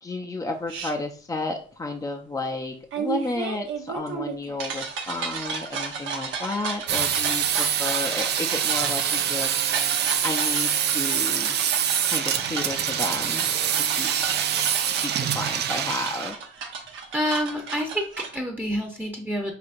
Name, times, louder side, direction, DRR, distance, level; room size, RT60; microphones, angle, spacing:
voice 1, 0.0-11.6 12.0-13.5 13.7-14.1 15.0-16.4, left 2 dB, 15° left, 3 dB, 0.5 m, -32 dB
sound 1, 0.7-0.9 2.9-18.4, right 5 dB, 80° right, 0.9 m, -33 dB
sound 2, 6.9-16.3, right 9 dB, 55° right, 0.4 m, -25 dB
voice 2, 17.1-19.5, equal, 10° right, 1 dB, 0.8 m, -28 dB
5.7 x 2.8 x 2.6 m, 0.42 s
cardioid pair, 90°, 20 cm